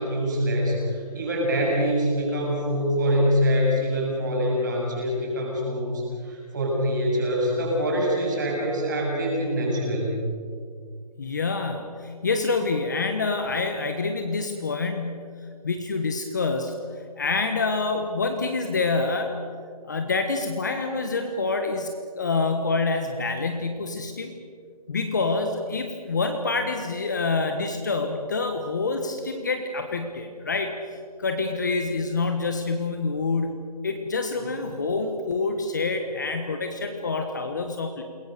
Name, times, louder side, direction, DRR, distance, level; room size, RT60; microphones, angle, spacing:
voice 1, 0.0-10.2, equal, 25° right, -2 dB, 7.7 m, -24 dB
voice 2, 11.2-16.8 17.2-19.3 19.8-24.3 24.9-38.0, left 3 dB, 25° left, 5 dB, 1.3 m, -27 dB
28.5 x 21.5 x 6.8 m, 2.1 s
figure-of-eight pair, 175°, 21 cm